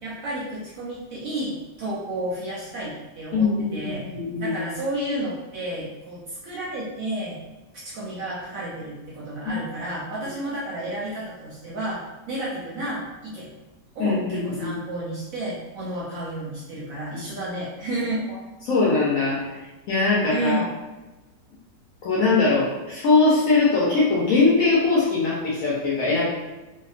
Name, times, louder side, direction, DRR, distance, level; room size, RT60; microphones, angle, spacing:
voice 1, 0.0-4.0 4.4-7.4 7.7-12.0 12.3-13.5 13.9-18.2 20.3-20.7, right 1 dB, 65° right, -6 dB, 0.8 m, -31 dB
voice 2, 3.3-4.6 9.4-9.5 14.0-14.8 18.6-19.4 19.9-20.6 22.0-26.3, left 3 dB, 70° left, -6 dB, 0.8 m, -21 dB
2.8 x 2.1 x 2.4 m, 1.1 s
omnidirectional pair, 1.9 m